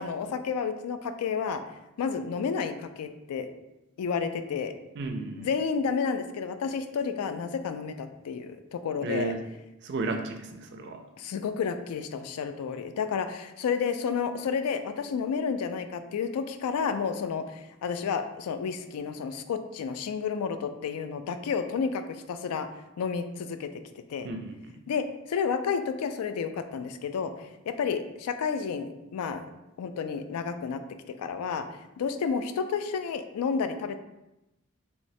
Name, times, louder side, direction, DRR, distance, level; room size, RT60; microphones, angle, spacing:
voice 1, 0.0-1.6 2.0-3.5 4.0-4.7 5.4-9.3 11.2-22.0 22.3-22.7 23.0-23.7 24.1-24.3 24.9-27.3 27.7-29.4 29.8-30.8 31.1-31.7 32.0-34.0, left 6 dB, 90° left, 9 dB, 0.3 m, -31 dB
voice 2, 5.0-5.5 9.0-9.4 9.8-11.0 24.2-24.8, right 3 dB, 50° right, 5 dB, 0.3 m, -33 dB
3.2 x 3.1 x 2.6 m, 0.94 s
head